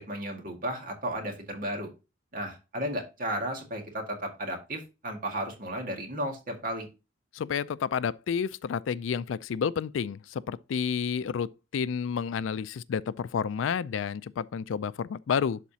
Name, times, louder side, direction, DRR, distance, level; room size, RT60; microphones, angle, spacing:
voice 1, 0.0-1.9 2.3-6.9, right 1 dB, 45° right, 2.0 m, -34 dB
voice 2, 7.3-15.6, left 7 dB, 85° left, 0.4 m, -30 dB
11.5 x 4.1 x 2.8 m
head